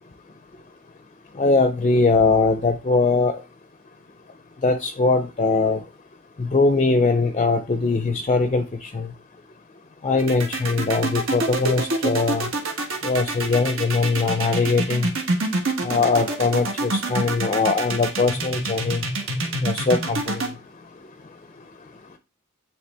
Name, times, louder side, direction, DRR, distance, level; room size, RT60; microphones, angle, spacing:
voice 1, 1.4-3.3 4.6-5.8 6.4-9.1 10.0-12.5 13.0-15.1 15.8-19.0 19.6-20.4, left 3 dB, 30° left, 8 dB, 0.4 m, -21 dB
sound 1, 10.2-20.5, right 2 dB, 70° right, 1.3 m, -26 dB
9.4 x 3.2 x 3.4 m, 0.30 s
head